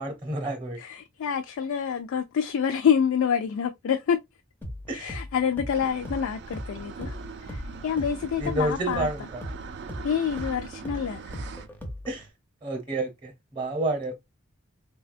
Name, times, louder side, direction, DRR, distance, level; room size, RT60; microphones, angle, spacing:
voice 1, 0.0-0.8 4.9-5.2 8.4-9.4 12.1-12.3 12.6-14.2, right 2 dB, 25° right, 0.7 m, -30 dB
voice 2, 0.8-4.2 4.9-9.1 10.0-11.4, left 7 dB, 70° left, 0.3 m, -27 dB
sound 1, 4.6-12.3, equal, 10° left, 0.4 m, -39 dB
sound 2, 5.7-11.7, right 5 dB, 55° right, 0.3 m, -41 dB
3.4 x 2.2 x 2.4 m
head